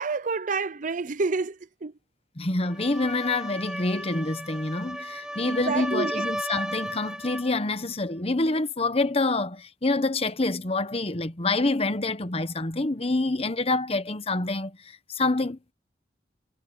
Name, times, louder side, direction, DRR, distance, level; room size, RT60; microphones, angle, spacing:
voice 1, 0.0-1.9 5.5-6.3, right 4 dB, 45° right, 0.6 m, -29 dB
voice 2, 2.4-15.7, left 2 dB, 35° left, 1.1 m, -27 dB
sound 1, 2.6-7.6, equal, 5° right, 0.9 m, -35 dB
head